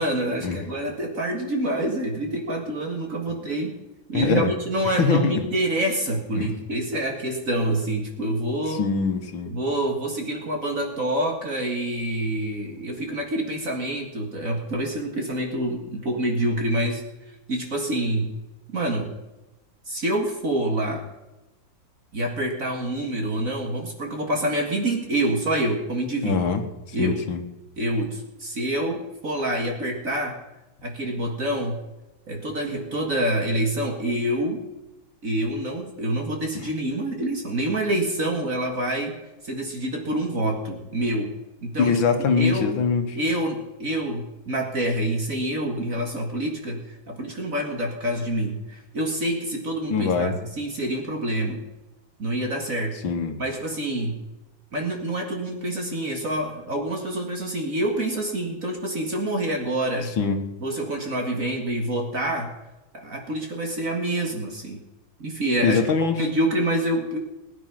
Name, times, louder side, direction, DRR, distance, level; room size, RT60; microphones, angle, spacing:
voice 1, 0.0-3.7 4.1-8.8 9.4-17.0 17.5-18.3 18.7-19.1 19.9-21.1 22.1-26.4 26.9-27.3 27.8-30.4 30.8-31.8 32.3-34.6 35.2-39.2 39.4-41.3 41.6-42.0 42.3-42.8 43.1-51.6 52.2-53.0 53.4-54.2 54.7-60.1 60.6-62.5 62.9-64.8 65.2-65.8 66.2-67.2, right 1 dB, 45° right, 2 dB, 2.2 m, -27 dB
voice 2, 4.1-4.5 5.0-5.3 6.3-6.5 8.7-9.5 26.2-27.4 36.5-36.7 41.8-43.1 49.9-50.4 53.0-53.4 60.2-60.4 65.6-66.2, left 5 dB, 75° left, 6 dB, 2.1 m, -23 dB
20.0 x 9.9 x 5.8 m, 1.0 s
omnidirectional pair, 2.2 m